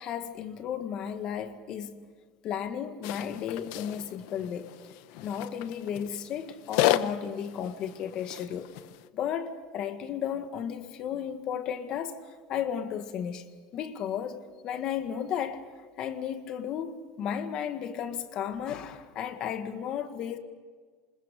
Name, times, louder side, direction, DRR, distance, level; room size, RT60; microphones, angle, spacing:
voice 1, 0.0-2.0 2.4-4.7 5.2-8.7 9.1-12.2 12.5-13.5 13.7-15.7 16.0-20.4, left 8 dB, 40° left, 1.8 m, -34 dB
sound 1, 3.0-9.1, left 14 dB, 65° left, 1.0 m, -33 dB
27.5 x 27.0 x 5.3 m
cardioid pair, 155°, 2 cm